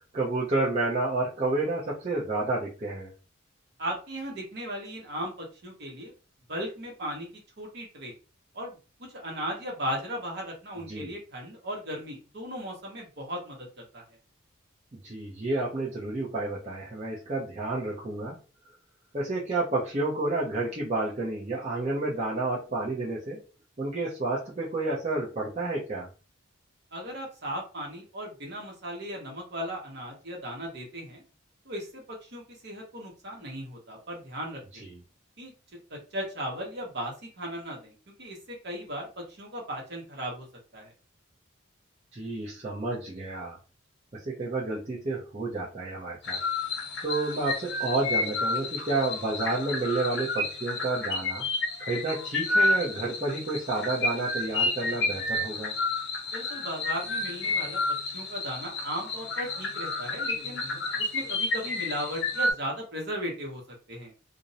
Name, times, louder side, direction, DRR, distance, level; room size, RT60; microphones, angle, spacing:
voice 1, 0.1-3.1 10.9-11.1 15.0-18.4 19.1-23.4 23.8-26.1 34.8-34.9 42.1-43.6 44.1-46.4 46.7-51.5 51.8-55.7, right 2 dB, 30° right, -6 dB, 0.6 m, -30 dB
voice 2, 3.8-6.1 6.5-7.3 7.6-8.1 8.5-14.0 26.9-31.2 31.6-34.8 35.4-35.5 35.9-37.9 38.2-40.5 40.7-40.9 56.3-60.6 61.0-63.6 63.9-64.1, equal, 55° right, 0 dB, 0.9 m, -37 dB
sound 1, 46.2-62.5, left 2 dB, 60° left, 0.6 m, -30 dB
2.5 x 2.0 x 2.7 m, 0.33 s
head